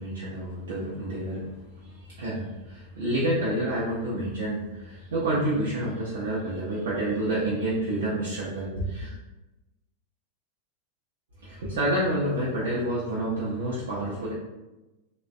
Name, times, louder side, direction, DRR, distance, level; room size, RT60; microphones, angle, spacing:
voice 1, 0.0-1.5 2.1-9.1 11.4-14.3, right 1 dB, 65° right, -7 dB, 0.6 m, -28 dB
3.1 x 2.1 x 2.5 m, 1.0 s
figure-of-eight pair, 90°, 0 cm